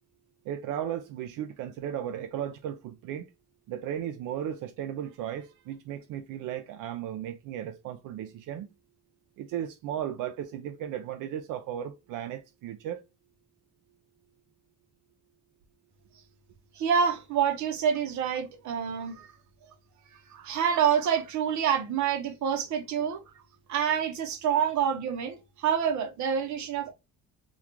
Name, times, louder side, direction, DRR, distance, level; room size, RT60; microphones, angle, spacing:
voice 1, 0.4-3.3 3.7-8.7 9.4-13.0, right 10 dB, 90° right, 0.5 m, -35 dB
voice 2, 16.8-19.3 20.3-23.2 23.7-26.9, right 8 dB, 65° right, 0.8 m, -27 dB
3.6 x 2.3 x 2.9 m
cardioid pair, 150°, 31 cm